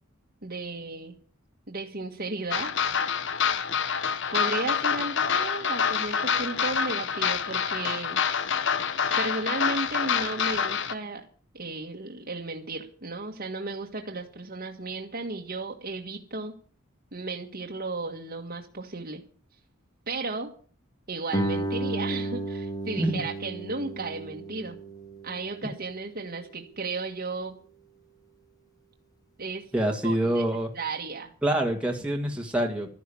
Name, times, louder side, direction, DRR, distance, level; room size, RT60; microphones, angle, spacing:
voice 1, 0.4-1.2 1.7-2.7 4.3-8.2 9.2-11.2 11.5-16.5 17.1-19.2 20.1-20.5 21.1-24.8 25.2-27.6 29.4-29.7 30.0-30.4 30.8-31.3, right 3 dB, 45° right, 1 dB, 1.7 m, -34 dB
sound 1, 2.5-10.9, left 7 dB, 60° left, 1.1 m, -27 dB
Guitar, 21.3-26.7, right 1 dB, 20° left, 1.5 m, -33 dB
voice 2, 29.7-30.7 31.4-32.9, right 1 dB, 5° right, 0 dB, 1.8 m, -26 dB
13.0 x 11.0 x 8.5 m, 0.43 s
head